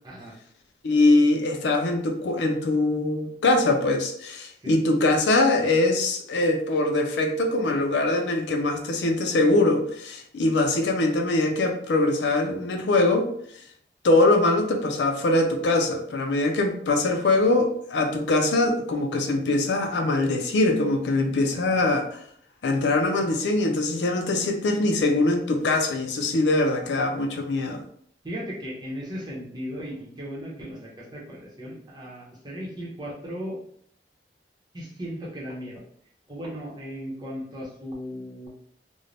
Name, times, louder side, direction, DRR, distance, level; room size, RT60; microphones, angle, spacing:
voice 1, 0.0-0.4 4.6-4.8 21.5-21.8 28.2-33.6 34.7-35.8 36.3-38.5, equal, 25° right, -4 dB, 0.8 m, -36 dB
voice 2, 0.8-13.3 14.0-22.2 22.6-27.8, left 2 dB, 85° left, 4 dB, 0.4 m, -22 dB
2.5 x 2.1 x 3.2 m, 0.63 s
head